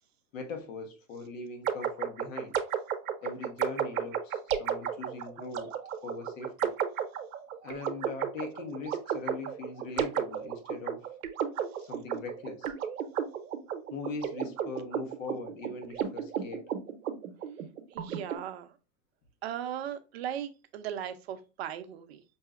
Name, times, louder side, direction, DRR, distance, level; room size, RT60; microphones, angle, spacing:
voice 1, 0.3-2.5 3.2-5.7 6.0-6.7 7.6-11.1 11.8-12.7 13.9-16.7, left 3 dB, 65° left, 1.2 m, -41 dB
sound 1, 1.7-18.4, right 8 dB, 80° right, 0.8 m, -33 dB
voice 2, 17.9-18.8 19.4-22.2, right 10 dB, 50° right, 0.6 m, -38 dB
5.5 x 2.7 x 2.4 m
hypercardioid pair, 140°, 42 cm